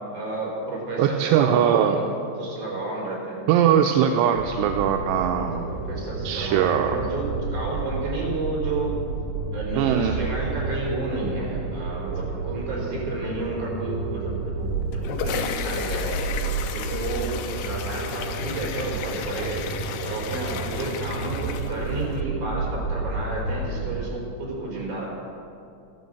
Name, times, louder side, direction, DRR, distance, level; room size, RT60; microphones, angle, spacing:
voice 1, 0.1-2.0 2.4-3.5 5.3-9.0 9.5-16.2 16.7-19.7 20.0-25.1, right 2 dB, 35° right, -3 dB, 4.9 m, -31 dB
voice 2, 1.0-2.0 3.5-5.6 6.2-7.0 9.8-10.2, right 9 dB, 80° right, 5 dB, 2.6 m, -21 dB
sound 1, 4.3-24.1, right 3 dB, 65° right, 3.5 m, -31 dB
sound 2, 14.7-22.2, left 8 dB, 75° left, 2.5 m, -34 dB
14.0 x 11.0 x 7.8 m, 2.5 s
omnidirectional pair, 5.1 m